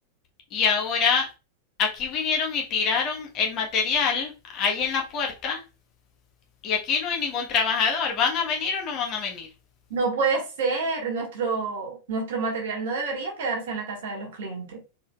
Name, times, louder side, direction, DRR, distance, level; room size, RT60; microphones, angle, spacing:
voice 1, 0.5-1.3 1.8-5.6 6.6-9.5, left 6 dB, 35° left, 1.2 m, -25 dB
voice 2, 9.9-14.8, right 4 dB, 55° right, 1.5 m, -28 dB
4.3 x 3.6 x 2.4 m
figure-of-eight pair, 90°, 0 cm